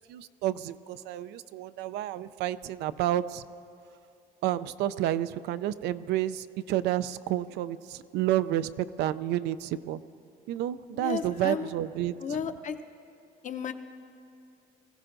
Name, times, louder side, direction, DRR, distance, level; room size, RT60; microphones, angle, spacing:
voice 1, 0.1-3.4 4.4-10.0 10.5-12.1, right 13 dB, 85° right, 14 dB, 0.4 m, -30 dB
voice 2, 11.0-11.7 12.2-12.8 13.4-13.7, left 7 dB, 50° left, 7 dB, 0.8 m, -33 dB
22.0 x 15.5 x 2.6 m, 2.6 s
cardioid pair, 110°, 17 cm